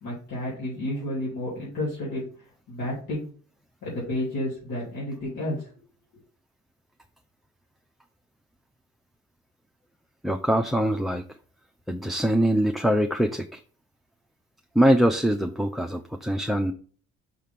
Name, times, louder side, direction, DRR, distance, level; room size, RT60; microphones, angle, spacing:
voice 1, 0.0-2.3 2.7-3.3 3.8-5.7, left 1 dB, 90° left, -8 dB, 3.0 m, -31 dB
voice 2, 10.2-11.2 11.9-13.6 14.7-16.7, equal, ahead, 4 dB, 0.5 m, -23 dB
5.8 x 3.5 x 5.8 m, 0.42 s
cardioid pair, 90°, 30 cm